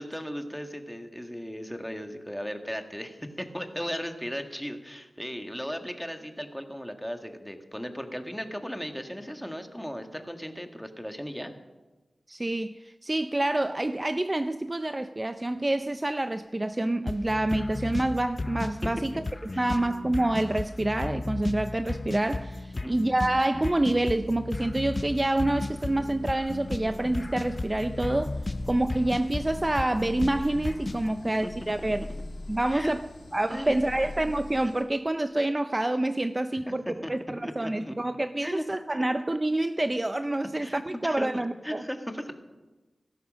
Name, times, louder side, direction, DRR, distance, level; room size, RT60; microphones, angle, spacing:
voice 1, 0.0-11.5 19.1-19.2 19.5-19.7 22.7-23.0 31.4-31.5 32.7-32.9 33.5-33.8 36.5-36.6 37.0-37.1 37.4-37.9 38.4-38.6 40.6-42.3, equal, ahead, 5 dB, 1.8 m, -36 dB
voice 2, 12.3-19.1 19.6-28.4 28.7-32.0 32.5-33.0 33.3-36.8 37.1-41.8, right 1 dB, 25° right, 10 dB, 0.5 m, -27 dB
sound 1, 17.0-17.2 17.6-34.8, left 2 dB, 80° left, 2.6 m, -45 dB
sound 2, 17.1-31.1, left 2 dB, 40° left, 0.5 m, -35 dB
16.5 x 13.5 x 6.4 m, 1.2 s
wide cardioid pair, 65°, 0 cm